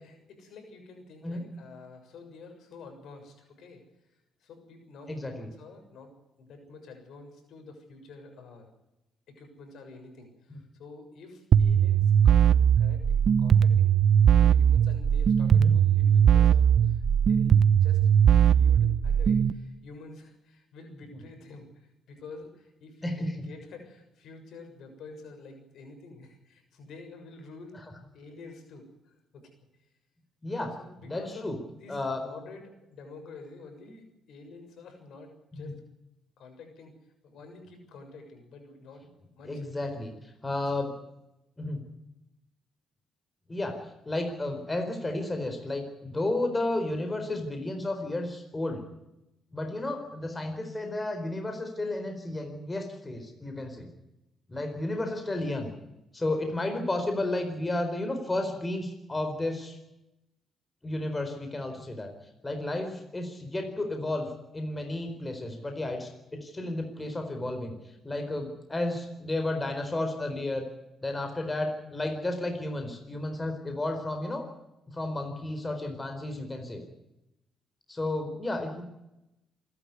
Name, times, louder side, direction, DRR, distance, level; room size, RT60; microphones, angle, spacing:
voice 1, 0.0-3.8 4.4-6.1 6.4-8.7 9.3-14.0 14.4-18.0 18.4-27.8 28.1-29.5 30.8-35.8 36.4-37.0 37.2-39.0 39.4-39.7, left 3 dB, 75° left, 5 dB, 6.8 m, -48 dB
voice 2, 5.1-5.5 10.5-10.6 15.5-15.7 23.0-23.3 30.4-30.7 31.0-31.6 31.9-32.2 35.6-35.7 39.5-40.1 40.4-40.9 41.6-41.8 43.5-48.8 49.5-53.9 54.5-55.7 56.1-59.8 60.8-62.1 62.4-67.7 68.0-70.7 71.0-74.4 74.9-76.8 77.9-78.8, left 2 dB, 20° left, 5 dB, 4.4 m, -32 dB
sound 1, 11.5-19.5, right 8 dB, 55° right, 0.9 m, -20 dB
26.5 x 12.0 x 9.7 m, 0.91 s
cardioid pair, 90°, 0 cm